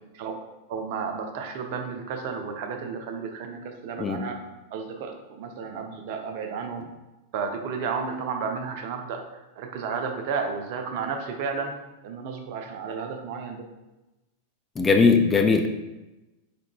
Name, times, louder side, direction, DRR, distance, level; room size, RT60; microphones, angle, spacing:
voice 1, 0.7-4.4 4.7-6.9 7.3-11.7 12.0-13.7, right 5 dB, 50° right, 4 dB, 0.5 m, -32 dB
voice 2, 14.8-15.7, left 4 dB, 15° left, 4 dB, 0.4 m, -19 dB
4.3 x 3.7 x 2.2 m, 1.0 s
figure-of-eight pair, 90°, 0 cm